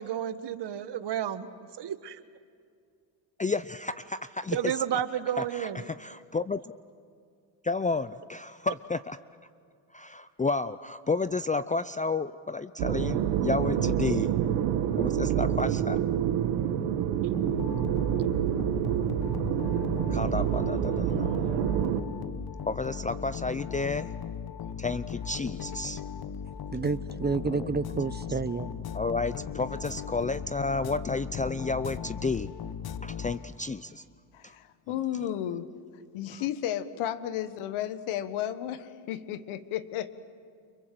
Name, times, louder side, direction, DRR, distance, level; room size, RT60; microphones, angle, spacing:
voice 1, 0.0-1.5 1.8-2.2 4.5-5.8 18.2-18.3, right 10 dB, 55° right, 11 dB, 1.7 m, -31 dB
voice 2, 3.4-4.8 5.4-6.7 7.6-9.2 9.9-14.3 15.0-16.0 20.1-21.4 22.6-24.1 24.8-26.0 26.7-26.8 27.5-27.7 28.9-32.5 33.0-34.0 34.4-34.6 36.3-36.4, left 3 dB, 15° left, 14 dB, 0.6 m, -31 dB
sound 1, 12.8-22.0, right 10 dB, 85° right, 1.8 m, -27 dB
sound 2, 17.3-33.8, left 7 dB, 50° left, 1.3 m, -38 dB
voice 3, 26.4-28.7, right 4 dB, 20° right, 15 dB, 0.9 m, -30 dB
voice 4, 34.3-35.7 36.1-40.1, left 11 dB, 80° left, 13 dB, 1.6 m, -33 dB
30.0 x 25.5 x 7.7 m, 2.3 s
supercardioid pair, 80°, 48 cm